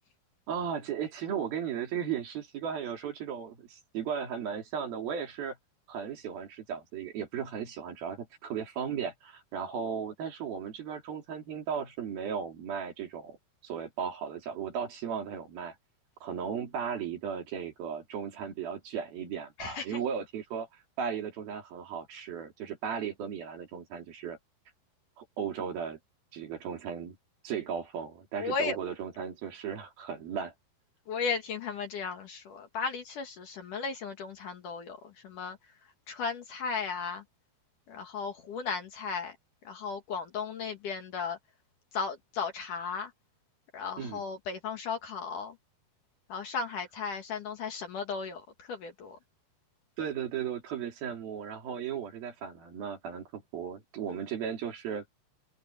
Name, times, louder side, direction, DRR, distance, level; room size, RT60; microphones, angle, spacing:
voice 1, 0.5-5.6 5.9-13.4 13.6-15.8 16.2-20.7 21.0-24.4 25.2-26.0 26.3-27.2 27.4-30.5 44.0-44.2 50.0-55.0, right 7 dB, 60° right, 4.5 m, -36 dB
voice 2, 19.6-20.0 28.4-28.8 31.1-35.6 36.1-37.2 37.9-39.4 39.6-41.4 41.9-43.1 43.7-45.6 46.3-49.2, left 5 dB, 55° left, 2.8 m, -35 dB
omnidirectional pair, 4.9 m